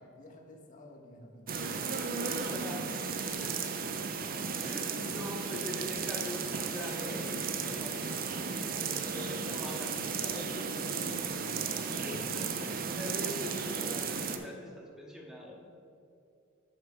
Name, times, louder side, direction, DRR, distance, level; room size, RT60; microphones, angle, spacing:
voice 1, 0.0-1.7 2.8-3.0 9.1-9.4 10.2-12.3, left 1 dB, 40° left, 1 dB, 0.8 m, -48 dB
sound 1, 1.5-14.4, right 5 dB, 45° right, 0.5 m, -35 dB
voice 2, 2.5-2.8 3.4-3.7 4.6-8.2 8.5-10.1 12.0-15.6, equal, 5° right, -1 dB, 0.9 m, -43 dB
6.5 x 5.8 x 5.3 m, 2.5 s
head